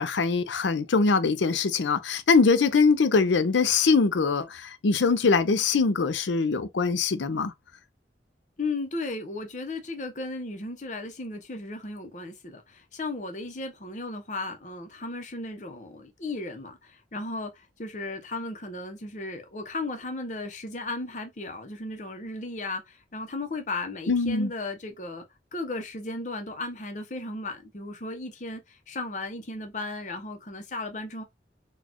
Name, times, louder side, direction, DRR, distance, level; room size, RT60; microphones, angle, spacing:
voice 1, 0.0-7.5 24.1-24.5, left 4 dB, 85° left, 0.5 m, -23 dB
voice 2, 8.6-25.2 25.5-31.2, left 2 dB, 40° left, 0.8 m, -35 dB
4.1 x 2.4 x 2.9 m
head